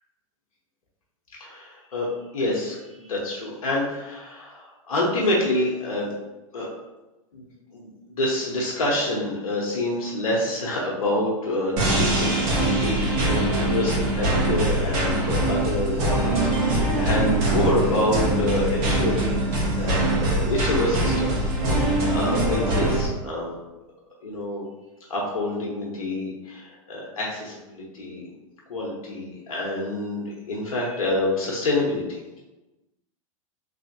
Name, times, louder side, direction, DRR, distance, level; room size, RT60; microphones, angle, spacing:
voice 1, 1.4-6.1 6.5-6.7 7.3-19.5 19.8-23.5 24.2-24.7 25.1-28.3 28.7-32.2, left 1 dB, 85° left, -4 dB, 0.9 m, -27 dB
sound 1, 11.8-23.1, right 1 dB, 50° right, 1.2 m, -23 dB
3.3 x 2.8 x 2.7 m, 1.1 s
hypercardioid pair, 110°, 18 cm